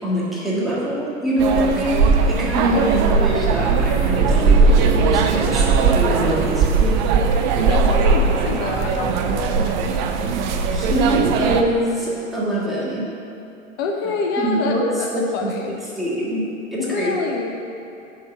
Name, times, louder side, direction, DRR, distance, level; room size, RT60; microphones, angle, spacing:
voice 1, 0.0-7.0 10.7-13.1 14.4-14.8 15.1-16.4 16.7-17.1, equal, ahead, -8 dB, 1.7 m, -24 dB
sound 1, 1.4-11.6, right 4 dB, 35° right, 0.6 m, -18 dB
voice 2, 2.5-2.9 7.7-10.0 13.8-15.1 15.3-15.8 16.8-17.6, left 4 dB, 20° left, 0 dB, 0.3 m, -27 dB
6.5 x 5.2 x 7.0 m, 2.9 s
figure-of-eight pair, 105°, 40 cm